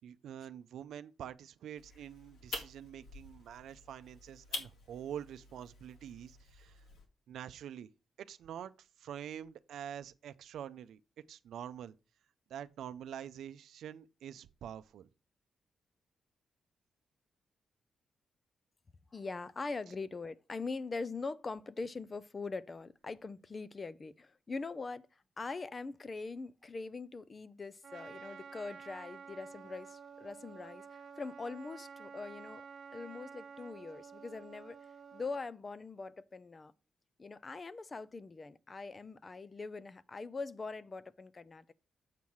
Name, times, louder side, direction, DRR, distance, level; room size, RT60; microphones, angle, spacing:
voice 1, 0.0-6.8 7.3-7.9 8.2-11.0 11.3-11.9 12.5-15.1, right 9 dB, 85° right, 0.5 m, -46 dB
sound 1, 1.8-7.1, left 3 dB, 80° left, 2.0 m, -47 dB
voice 2, 19.1-30.8 31.2-32.7 32.9-34.8 35.1-36.7 37.2-41.7, left 3 dB, 25° left, 0.4 m, -42 dB
Trumpet, 27.8-35.4, right 6 dB, 50° right, 1.4 m, -51 dB
7.4 x 5.6 x 4.5 m
wide cardioid pair, 155°, 0 cm